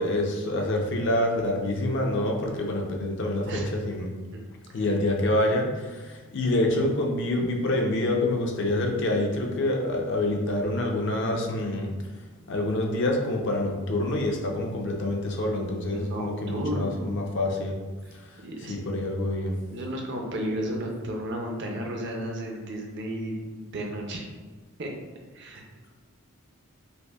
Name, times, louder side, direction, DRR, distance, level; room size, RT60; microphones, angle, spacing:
voice 1, 0.0-4.1 4.7-11.9 12.5-17.7 18.1-18.4 18.7-19.5, left 1 dB, 50° left, 1 dB, 0.5 m, -27 dB
voice 2, 3.5-4.5 15.9-17.2 18.4-18.9 19.7-24.2 24.8-24.9 25.3-25.6, right 1 dB, 50° right, 1 dB, 0.5 m, -33 dB
5.2 x 2.0 x 2.3 m, 1.3 s
head